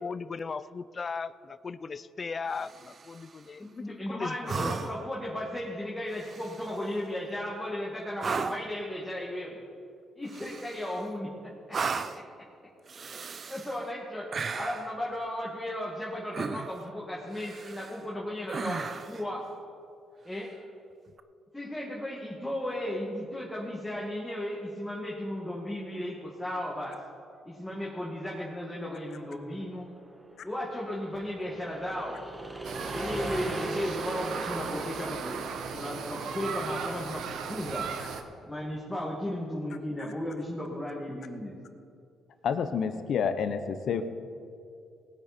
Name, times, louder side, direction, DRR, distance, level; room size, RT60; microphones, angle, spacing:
voice 1, 0.0-4.9, left 5 dB, 35° left, 17 dB, 0.4 m, -37 dB
sound 1, 2.5-3.2 4.5-5.1 6.1-6.9 8.2-8.8 10.3-11.0 11.7-12.3 12.9-13.8 14.3-14.9 16.3-16.9 17.3-18.0 18.5-19.2 21.1-21.2, right 5 dB, 45° right, 0.5 m, -35 dB
voice 2, 3.6-9.6 10.2-12.2 13.5-19.4 20.2-20.5 21.5-27.0 27.4-29.9 30.4-32.2 32.9-35.4 35.7-37.9 38.4-41.6, left 1 dB, 5° left, -5 dB, 2.1 m, -35 dB
sound 2, 29.6-36.5, right 2 dB, 15° right, 1.3 m, -39 dB
sound 3, 32.6-38.2, right 6 dB, 75° right, 1.0 m, -37 dB
voice 3, 42.4-44.1, left 6 dB, 65° left, 10 dB, 0.9 m, -29 dB
19.0 x 8.8 x 4.4 m, 2.5 s
cardioid pair, 90°, 0 cm